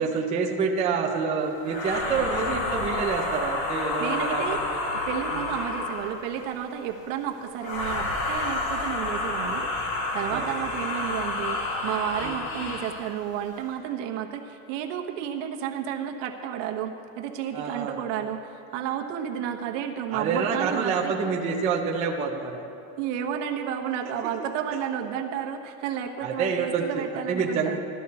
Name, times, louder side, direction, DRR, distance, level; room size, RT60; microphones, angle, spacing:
voice 1, 0.0-4.8 5.3-5.5 10.3-10.5 12.2-12.4 17.5-18.0 20.1-22.6 26.2-27.8, right 5 dB, 15° right, -1 dB, 0.5 m, -27 dB
Gaspy growl, 1.6-6.2 7.6-13.0, left 2 dB, 55° left, 2.1 m, -29 dB
voice 2, 4.0-4.6 4.9-9.7 10.1-21.3 23.0-27.8, right 9 dB, 65° right, 3 dB, 1.2 m, -32 dB
15.0 x 12.5 x 4.1 m, 2.7 s
cardioid pair, 175°, 41 cm